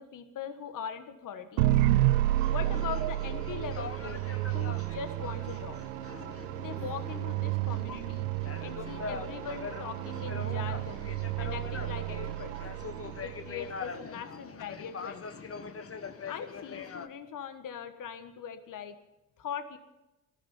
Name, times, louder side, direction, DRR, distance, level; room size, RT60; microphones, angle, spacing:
voice 1, 0.0-1.7 2.5-4.2 4.5-5.8 6.6-8.3 8.6-11.1 11.4-12.5 13.2-15.4 16.3-19.0 19.4-19.8, left 7 dB, 55° left, 9 dB, 1.6 m, -41 dB
sound 1, 1.6-13.7, right 16 dB, 85° right, 0.6 m, -31 dB
sound 2, 2.4-17.1, left 5 dB, 35° left, 1.6 m, -43 dB
18.5 x 13.0 x 5.7 m, 0.96 s
hypercardioid pair, 55°, 38 cm